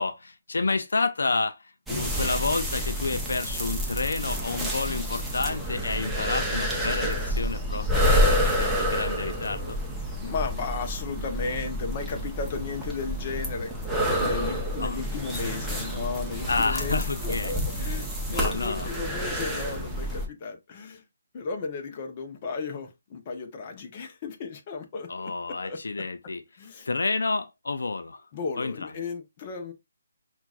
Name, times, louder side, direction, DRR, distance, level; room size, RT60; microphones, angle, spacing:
voice 1, 0.0-9.8 14.8-15.0 16.5-17.5 18.3-18.9 25.1-26.4 26.8-28.3 28.6-28.9, left 3 dB, 80° left, 0.4 m, -30 dB
sound 1, 1.9-20.3, equal, ahead, 0.7 m, -28 dB
voice 2, 10.2-13.7 14.2-21.0 21.3-25.8 26.6-26.9 28.3-29.7, left 4 dB, 30° left, 0.8 m, -34 dB
5.7 x 2.4 x 2.4 m
hypercardioid pair, 160°, 0 cm